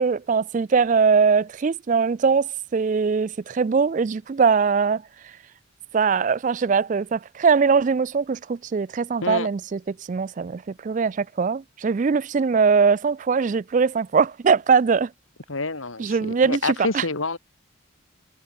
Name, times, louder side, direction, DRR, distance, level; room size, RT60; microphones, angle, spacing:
voice 1, 0.0-5.3 5.9-15.1 16.0-17.1, right 5 dB, 40° right, 0.3 m, -21 dB
voice 2, 15.5-17.4, left 3 dB, 85° left, 2.6 m, -27 dB
head